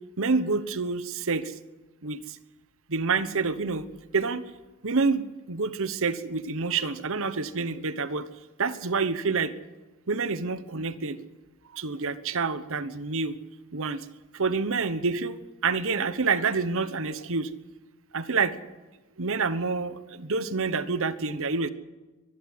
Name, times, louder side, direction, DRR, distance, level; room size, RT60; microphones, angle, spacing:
voice 1, 0.2-1.5 2.0-2.4 2.9-3.9 4.1-4.5 4.8-8.3 8.6-9.5 10.1-11.2 11.7-13.4 13.7-14.1 14.3-17.5 18.1-18.5 19.2-21.7, right 4 dB, 65° right, 13 dB, 1.1 m, -28 dB
23.5 x 12.0 x 9.7 m, 1.2 s
head